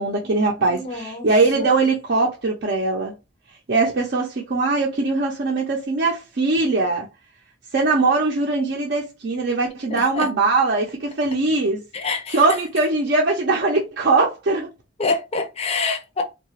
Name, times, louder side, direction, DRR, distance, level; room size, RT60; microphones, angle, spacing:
voice 1, 0.0-3.1 3.7-7.1 7.7-14.7, right 3 dB, 55° right, 0.5 m, -21 dB
voice 2, 0.6-1.3 9.9-10.3 11.9-12.4 15.0-16.2, left 4 dB, 30° left, 0.5 m, -26 dB
2.7 x 2.2 x 2.8 m
head